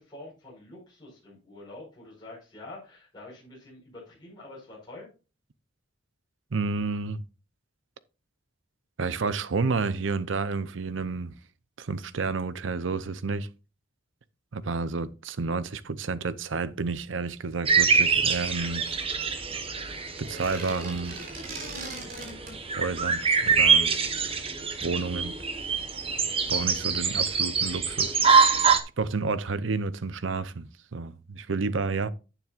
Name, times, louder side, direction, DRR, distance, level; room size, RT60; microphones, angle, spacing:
voice 1, 0.0-5.1, left 2 dB, 20° left, 5.1 m, -46 dB
voice 2, 6.5-7.2 9.0-11.3 11.8-13.5 14.5-19.0 20.2-21.2 22.8-23.9 24.8-25.3 26.5-28.6 29.0-32.1, right 4 dB, 75° right, 0.7 m, -30 dB
sound 1, 17.7-28.8, right 5 dB, 30° right, 1.1 m, -25 dB
sound 2, 20.2-22.6, right 2 dB, 50° right, 3.8 m, -39 dB
10.5 x 9.1 x 2.5 m
head